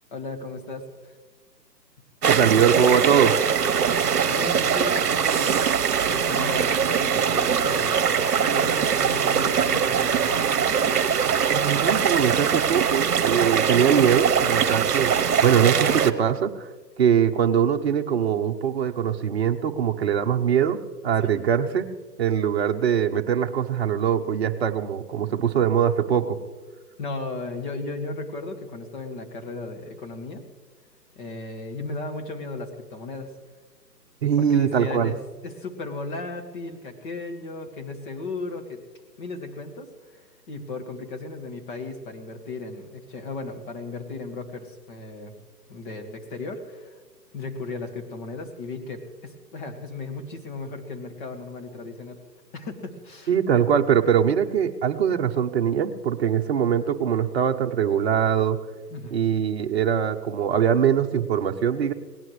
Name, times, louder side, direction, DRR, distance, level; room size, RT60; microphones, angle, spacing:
voice 1, 0.1-1.1 4.3-5.6 6.1-10.8 14.6-14.9 21.2-21.3 27.0-30.5 31.2-33.3 34.2-38.8 39.2-45.3 45.7-47.0 47.3-52.2 52.5-53.3 58.9-59.2, left 3 dB, 30° left, 3 dB, 1.9 m, -36 dB
sound 1, 2.2-16.1, right 7 dB, 60° right, 1.1 m, -22 dB
voice 2, 2.3-3.3 11.5-16.7 17.0-20.8 21.0-21.9 22.2-26.4 34.2-35.1 53.3-58.6 59.1-61.9, right 8 dB, 40° right, 4 dB, 1.0 m, -22 dB
21.5 x 18.0 x 3.3 m, 1.3 s
hypercardioid pair, 150°, 50 cm